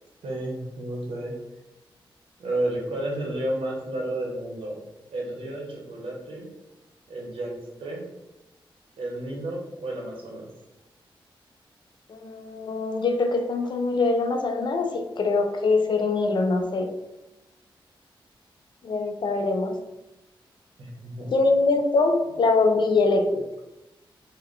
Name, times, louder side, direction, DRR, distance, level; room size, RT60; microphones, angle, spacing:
voice 1, 0.2-1.3 2.4-4.8 5.1-6.5 7.1-8.1 9.0-10.5 20.8-21.3, right 1 dB, 85° right, -2 dB, 0.9 m, -32 dB
voice 2, 12.1-16.9 18.8-19.8 21.3-23.5, left 3 dB, 60° left, 5 dB, 0.4 m, -23 dB
3.2 x 2.1 x 3.7 m, 0.95 s
wide cardioid pair, 95°, 9 cm